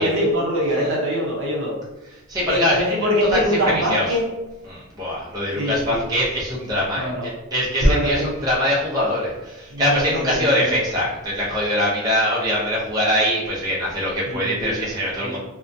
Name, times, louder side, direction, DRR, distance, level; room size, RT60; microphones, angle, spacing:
voice 1, 0.0-1.7 2.5-4.3 5.5-6.0 6.9-7.3 7.8-8.2 9.7-10.7 14.3-14.9 15.2-15.4, equal, 55° right, -3 dB, 0.7 m, -23 dB
voice 2, 2.3-3.0 3.3-4.2 4.7-15.4, equal, 15° right, -7 dB, 0.6 m, -23 dB
2.7 x 2.1 x 2.6 m, 1.1 s
head